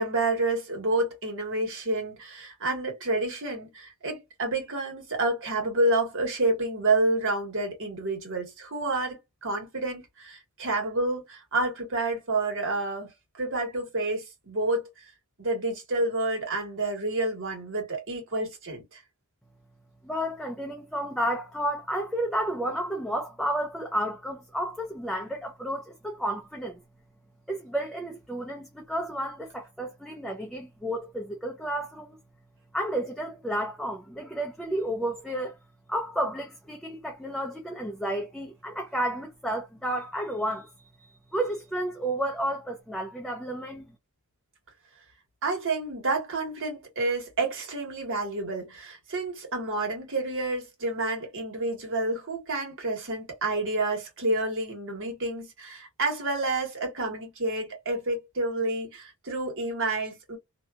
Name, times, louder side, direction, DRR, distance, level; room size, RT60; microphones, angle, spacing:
voice 1, 0.0-14.9 15.4-19.0 45.4-60.4, right 2 dB, 65° right, 1.5 m, -29 dB
voice 2, 20.0-26.8 27.5-32.2 32.7-35.5 35.9-40.7 41.3-43.9, right 1 dB, ahead, 0.5 m, -31 dB
2.8 x 2.3 x 2.3 m
head